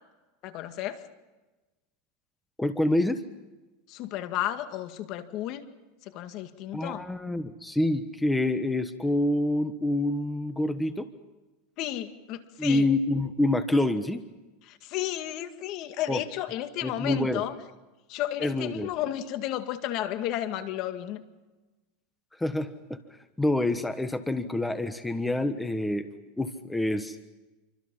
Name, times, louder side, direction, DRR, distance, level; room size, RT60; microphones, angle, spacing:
voice 1, 0.4-1.0 3.9-5.7 6.0-7.1 11.8-12.9 14.7-17.5 18.1-21.2, left 12 dB, 50° left, 8 dB, 2.1 m, -33 dB
voice 2, 2.6-3.2 6.7-11.1 12.6-14.2 16.1-16.2 16.8-17.4 18.4-18.9 22.3-26.1 26.4-27.2, left 1 dB, 5° left, 9 dB, 1.3 m, -27 dB
28.5 x 24.5 x 5.7 m, 1.1 s
supercardioid pair, 125°, 0 cm